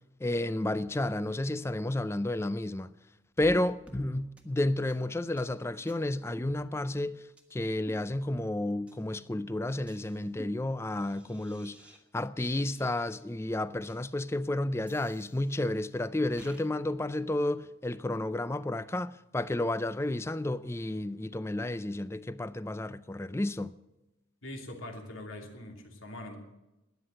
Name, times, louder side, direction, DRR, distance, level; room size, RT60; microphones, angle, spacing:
voice 1, 0.2-2.9 3.4-11.8 12.1-23.7, left 1 dB, 15° left, 0.4 m, -31 dB
sound 1, 3.4-3.6 3.9-4.1 4.4-4.5 4.9-5.0 5.4-5.5 5.9-6.0 6.4-7.0 7.4-7.5 7.9-8.5 8.9-9.0 9.4-12.0 12.4-13.3 13.9-14.0 14.9-15.8 16.4-16.7, right 1 dB, 5° right, 1.3 m, -52 dB
voice 2, 24.4-26.4, left 1 dB, 85° left, 2.7 m, -42 dB
13.0 x 10.0 x 7.8 m
head